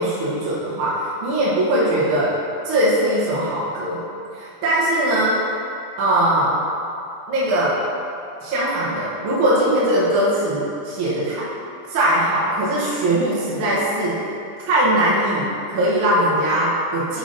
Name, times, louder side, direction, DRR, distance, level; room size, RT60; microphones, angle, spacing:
voice 1, 0.0-2.4 2.7-4.0 4.3-5.4 6.0-6.6 7.3-7.8 8.4-11.5 11.9-14.3 14.7-17.2, right 1 dB, 55° right, -8 dB, 1.8 m, -20 dB
6.6 x 4.9 x 4.0 m, 2.7 s
omnidirectional pair, 3.4 m